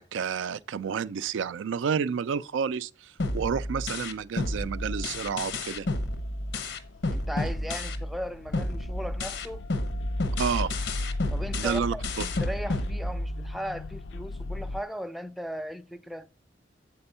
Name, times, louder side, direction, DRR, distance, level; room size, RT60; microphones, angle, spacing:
voice 1, 0.0-5.9 10.4-10.7 11.6-12.2, right 6 dB, 90° right, 0.4 m, -30 dB
sound 1, 3.2-8.2 8.5-13.6, left 2 dB, 85° left, 0.9 m, -31 dB
sound 2, 4.8-14.8, left 2 dB, 70° left, 0.4 m, -38 dB
voice 2, 7.1-9.6 11.3-16.3, equal, ahead, 0.4 m, -37 dB
7.8 x 4.3 x 5.4 m
head